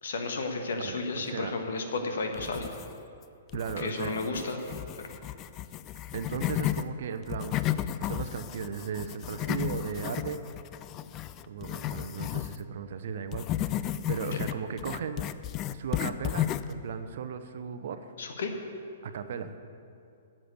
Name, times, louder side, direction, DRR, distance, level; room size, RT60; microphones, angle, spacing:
voice 1, 0.0-2.7 3.8-4.6 14.3-14.4 18.2-18.5, left 3 dB, 60° left, 5 dB, 1.5 m, -32 dB
voice 2, 0.8-1.5 3.5-4.3 6.1-7.6 8.0-10.4 11.5-13.8 14.1-15.3 15.7-18.1 19.0-19.5, right 6 dB, 55° right, 10 dB, 0.8 m, -36 dB
sound 1, 2.3-3.2 3.5-6.9 7.2-12.6 13.3-16.8, left 12 dB, 30° left, 0.4 m, -33 dB
10.0 x 7.6 x 8.2 m, 2.5 s
figure-of-eight pair, 115°, 0 cm